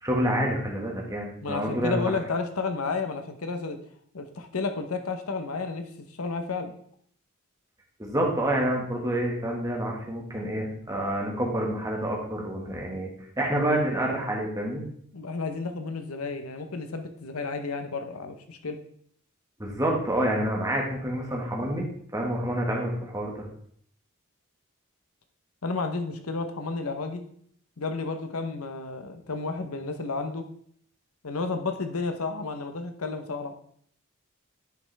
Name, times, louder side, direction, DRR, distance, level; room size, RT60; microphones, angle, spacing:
voice 1, 0.0-2.1 8.0-13.1 13.4-14.8 19.6-21.8 22.1-23.4, right 1 dB, 15° right, -1 dB, 1.6 m, -28 dB
voice 2, 1.4-3.8 4.1-5.9 6.2-6.7 15.1-18.8 25.6-27.2 27.8-30.5 31.2-33.5, left 4 dB, 90° left, 7 dB, 0.9 m, -31 dB
10.5 x 5.3 x 3.4 m, 0.64 s
head